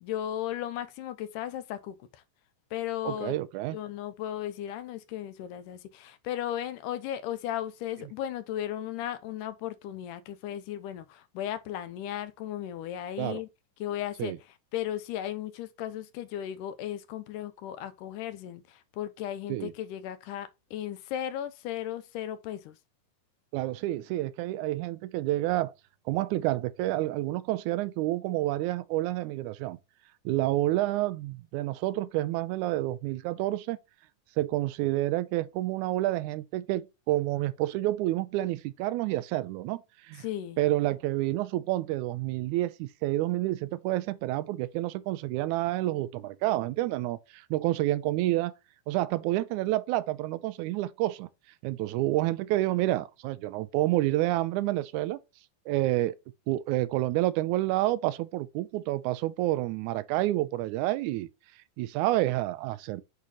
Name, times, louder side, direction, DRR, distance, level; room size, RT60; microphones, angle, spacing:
voice 1, 0.0-2.2 2.7-3.4 3.7-13.5 13.8-22.8 40.2-40.6, left 11 dB, 80° left, 2.1 m, -36 dB
voice 2, 3.1-3.8 13.2-13.4 14.2-14.4 19.5-19.7 23.5-25.7 26.1-29.8 30.3-33.8 34.4-40.2 40.6-48.5 48.9-51.3 51.6-55.2 55.7-56.2 56.5-61.3 61.8-63.0, right 16 dB, 80° right, 1.8 m, -29 dB
8.2 x 3.9 x 2.9 m
omnidirectional pair, 3.9 m